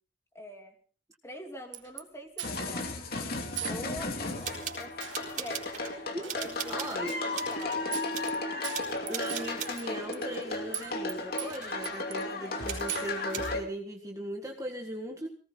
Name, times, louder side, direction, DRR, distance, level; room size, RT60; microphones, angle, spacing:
voice 1, 0.3-0.7 1.2-3.3 3.6-4.9 5.4-5.7 6.3-8.1, equal, 15° left, 3 dB, 3.0 m, -45 dB
sound 1, 1.7-2.0 2.4-2.8 3.6-3.8 4.1-4.2 5.0-5.2 6.2-6.4 7.1-7.2 7.5-7.6 7.9-8.4 8.6-10.4 10.7-11.1 11.4-12.3 12.9-13.2, right 12 dB, 90° right, 1.5 m, -38 dB
sound 2, 2.4-13.6, left 2 dB, 55° left, 2.7 m, -35 dB
sound 3, 4.3-6.0 6.3-7.0 7.3-7.8 8.1-8.4 8.7-9.8 10.3-11.2 11.5-11.8 12.6-13.5, right 8 dB, 45° right, 4.2 m, -40 dB
voice 2, 6.7-7.2 9.1-15.3, right 1 dB, 20° right, 2 dB, 1.8 m, -38 dB
18.5 x 18.5 x 3.9 m, 0.42 s
head